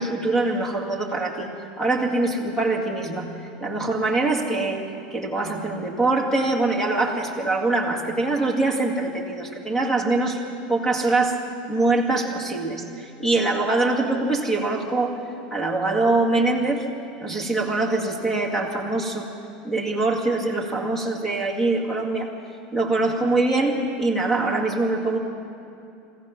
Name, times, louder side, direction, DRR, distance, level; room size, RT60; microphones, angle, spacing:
voice 1, 0.0-1.5 1.8-3.3 3.6-4.8 5.1-10.4 10.7-11.4 11.7-15.2 15.5-16.8 17.2-19.3 19.6-22.3 22.7-25.2, right 2 dB, 10° left, 1 dB, 2.1 m, -23 dB
25.0 x 17.0 x 6.0 m, 2.7 s
supercardioid pair, 180°, 4 cm